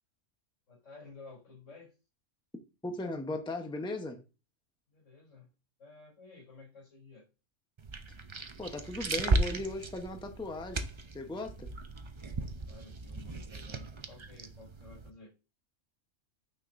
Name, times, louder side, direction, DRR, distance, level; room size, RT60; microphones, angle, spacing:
voice 1, 0.7-1.9 4.9-5.5 5.8-7.3 12.7-15.3, left 3 dB, 80° left, 3.7 m, -53 dB
voice 2, 2.8-4.2 8.6-10.9 11.1-11.7, left 2 dB, 5° left, 0.8 m, -37 dB
sound 1, 7.8-15.1, right 2 dB, 35° right, 0.4 m, -36 dB
8.9 x 5.9 x 2.6 m
omnidirectional pair, 1.3 m